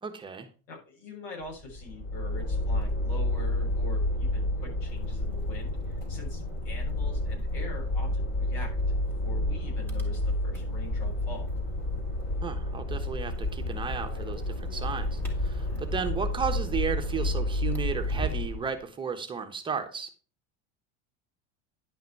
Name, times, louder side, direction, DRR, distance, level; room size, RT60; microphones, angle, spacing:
voice 1, 0.0-0.5 12.4-20.1, right 6 dB, 15° right, 5 dB, 1.1 m, -34 dB
voice 2, 0.7-8.8 9.2-11.5 15.7-16.1, left 3 dB, 80° left, 0 dB, 6.3 m, -44 dB
sound 1, 1.4-18.7, left 1 dB, 40° left, 4.0 m, -30 dB
sound 2, 4.9-18.6, right 4 dB, 5° left, 2.5 m, -46 dB
10.5 x 5.8 x 4.7 m, 0.34 s
supercardioid pair, 145°, 30 cm